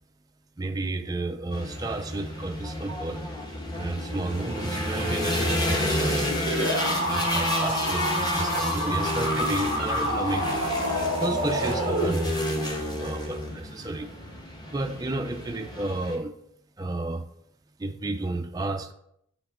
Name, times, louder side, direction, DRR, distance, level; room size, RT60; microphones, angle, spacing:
voice 1, 0.6-3.2 3.7-6.3 7.0-10.6 10.9-14.1 14.7-16.3 16.8-17.3 17.8-18.9, right 2 dB, 15° right, 4 dB, 0.4 m, -32 dB
sound 1, 1.5-16.2, left 1 dB, 20° left, 1.0 m, -30 dB
sound 2, 6.5-12.5, equal, 60° left, 2.2 m, -28 dB
8.2 x 5.8 x 3.6 m, 0.73 s
head